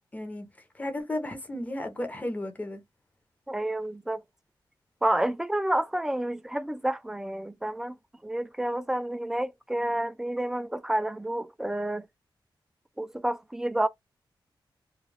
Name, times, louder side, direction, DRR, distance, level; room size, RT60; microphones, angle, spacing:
voice 1, 0.1-0.5 0.7-2.8, left 1 dB, 20° left, 0.7 m, -34 dB
voice 2, 3.5-4.2 5.0-8.0 8.2-12.1 13.0-13.9, right 1 dB, 5° right, 0.3 m, -29 dB
2.3 x 2.2 x 3.2 m
wide cardioid pair, 125°, 8 cm